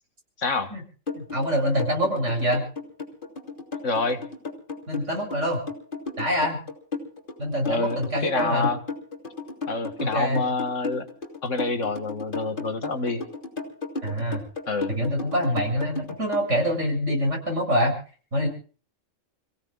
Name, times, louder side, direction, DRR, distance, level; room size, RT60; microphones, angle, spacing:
voice 1, 0.4-0.7 3.8-4.2 7.7-8.8 9.7-11.1 11.4-13.2 14.7-14.9, left 3 dB, 75° left, 8 dB, 2.0 m, -27 dB
sound 1, 1.1-16.5, left 4 dB, 40° left, 3.4 m, -34 dB
voice 2, 1.2-2.6 4.9-5.6 6.2-6.6 7.4-8.7 10.0-10.5 14.0-14.4 15.0-18.0 18.3-18.5, equal, 75° right, 1 dB, 7.5 m, -25 dB
29.0 x 17.0 x 2.4 m, 0.41 s
omnidirectional pair, 1.3 m